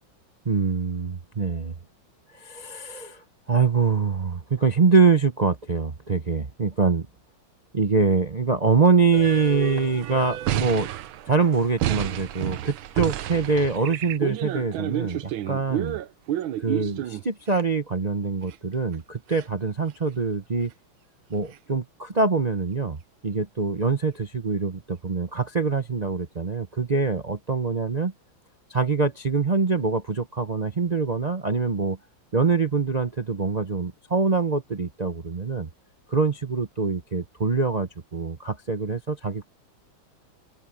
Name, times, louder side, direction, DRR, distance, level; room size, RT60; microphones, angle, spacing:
voice 1, 0.4-1.7 2.3-7.1 7.7-10.9 11.2-16.0 16.6-20.7 21.3-23.0 23.2-28.1 28.7-32.0 32.3-35.7 36.1-39.5, right 4 dB, 55° right, 0.4 m, -24 dB
sound 1, 9.1-17.6 18.5-18.6 18.9-19.0 19.3-19.5 19.9-20.0 21.5-21.6, right 12 dB, 75° right, 1.6 m, -30 dB
open air
omnidirectional pair, 2.2 m